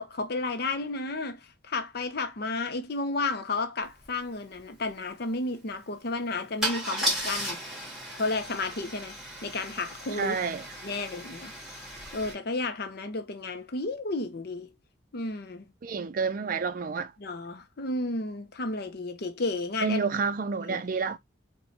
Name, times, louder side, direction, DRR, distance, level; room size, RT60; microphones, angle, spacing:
voice 1, 0.0-7.6 8.1-10.4 10.8-11.5 12.1-14.7 15.1-15.7 17.2-20.0 20.7-20.8, left 3 dB, 55° left, 0.6 m, -32 dB
Car / Engine starting / Idling, 4.0-4.1 4.4-4.6 6.6-12.3, right 1 dB, ahead, 1.1 m, -35 dB
voice 2, 10.2-10.6 15.8-17.1 19.8-21.2, right 5 dB, 45° right, 0.4 m, -29 dB
4.4 x 2.2 x 2.8 m
head